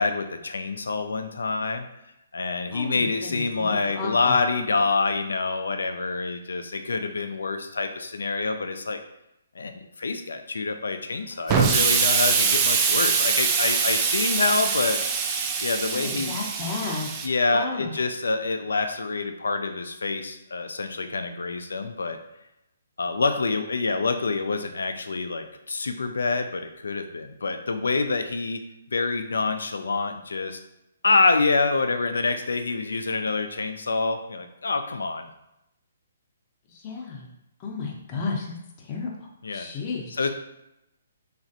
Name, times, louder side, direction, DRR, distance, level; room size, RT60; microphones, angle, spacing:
voice 1, 0.0-1.9 2.3-9.0 9.6-16.4 17.2-22.2 23.0-28.6 28.9-30.6 31.0-35.3 39.4-39.7 40.2-40.3, left 3 dB, 80° left, 7 dB, 0.3 m, -26 dB
voice 2, 2.7-4.4 15.9-17.1 17.5-18.0 36.7-37.3 37.6-40.1, left 4 dB, 35° left, -1 dB, 0.6 m, -33 dB
Explosion, 11.5-17.3, right 6 dB, 25° right, 0.3 m, -23 dB
3.1 x 2.4 x 2.6 m, 0.86 s
hypercardioid pair, 140°, 0 cm